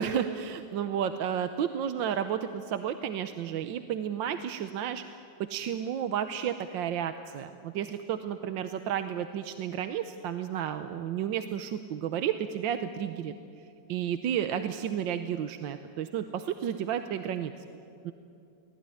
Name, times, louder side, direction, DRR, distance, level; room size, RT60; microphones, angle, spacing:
voice 1, 0.0-5.0 5.4-13.3 13.9-17.5 18.0-18.1, right 9 dB, 75° right, 9 dB, 1.5 m, -32 dB
24.5 x 18.5 x 9.9 m, 2.7 s
omnidirectional pair, 2.1 m